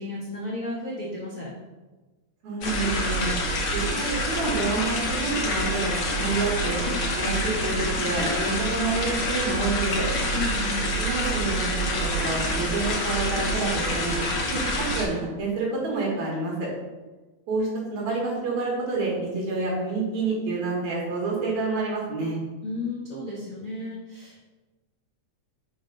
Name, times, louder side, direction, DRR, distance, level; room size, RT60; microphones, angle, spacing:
voice 1, 0.0-1.5 10.3-10.9 22.6-24.4, left 2 dB, 85° left, -6 dB, 0.7 m, -33 dB
voice 2, 2.4-3.3 3.7-6.8 7.2-10.1 11.0-14.2 14.5-16.7 17.5-22.4, right 3 dB, 75° right, -3 dB, 3.0 m, -28 dB
sound 1, 2.6-15.1, equal, 65° left, 1.2 m, -27 dB
6.1 x 3.3 x 5.2 m, 1.2 s
omnidirectional pair, 3.3 m